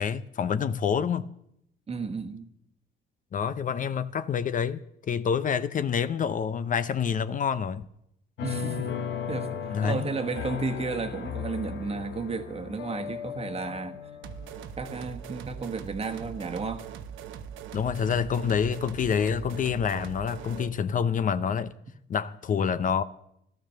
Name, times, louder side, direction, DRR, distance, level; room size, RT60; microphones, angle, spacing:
voice 1, 0.0-1.3 3.3-7.8 9.7-10.1 17.7-21.7 22.1-23.0, left 7 dB, 45° left, 0.6 m, -27 dB
voice 2, 1.9-2.5 8.4-9.0 9.3-14.0 14.8-16.8, right 4 dB, 30° right, 1.3 m, -33 dB
sound 1, 8.4-15.6 16.1-16.7, left 8 dB, 75° left, 1.2 m, -37 dB
sound 2, 14.2-20.8, right 8 dB, 90° right, 1.0 m, -41 dB
13.5 x 12.5 x 6.6 m
cardioid pair, 110°, 19 cm